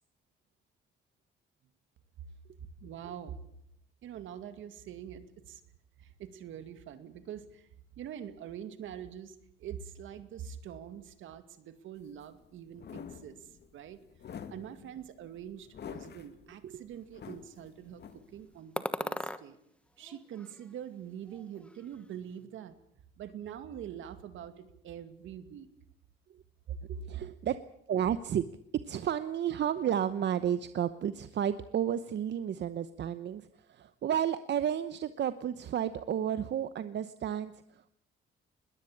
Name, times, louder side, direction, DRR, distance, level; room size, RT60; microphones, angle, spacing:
voice 1, 2.8-3.4 4.0-5.6 6.0-7.7 7.9-14.0 14.5-19.6 20.0-22.8 23.2-25.7 26.7-26.8, right 9 dB, 80° right, 10 dB, 2.3 m, -44 dB
sound 1, 12.0-18.6, left 7 dB, 55° left, 2.1 m, -48 dB
sound 2, 18.8-19.4 20.0-21.0 21.2-22.1, left 1 dB, 5° left, 1.3 m, -39 dB
voice 2, 27.0-27.6 27.9-28.5 28.8-37.9, right 9 dB, 60° right, 12 dB, 1.0 m, -32 dB
21.0 x 18.5 x 8.7 m, 0.72 s
cardioid pair, 90°, 20 cm